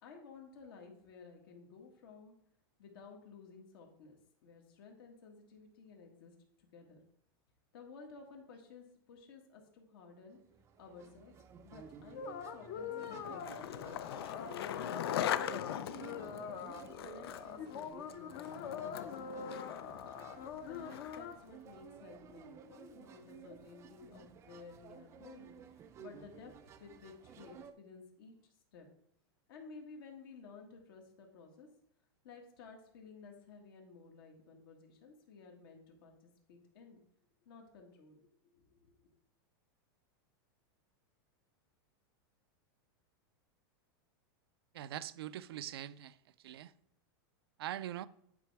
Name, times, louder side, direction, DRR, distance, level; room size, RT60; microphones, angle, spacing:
voice 1, 0.0-2.3 2.8-4.2 4.4-7.0 7.7-10.4 10.8-11.3 11.6-14.1 14.9-16.6 17.0-20.0 20.7-28.9 29.5-31.7 32.2-37.0 37.5-39.1, left 4 dB, 65° left, 1.7 m, -55 dB
sound 1, 10.3-27.7, right 8 dB, 20° right, 0.5 m, -55 dB
sound 2, 12.2-21.4, left 6 dB, 50° left, 0.9 m, -44 dB
Skateboard, 13.0-21.4, left 11 dB, 85° left, 0.5 m, -41 dB
voice 2, 44.7-46.2 46.4-46.7 47.6-48.1, right 12 dB, 85° right, 0.5 m, -42 dB
9.5 x 4.2 x 4.7 m
supercardioid pair, 155°, 13 cm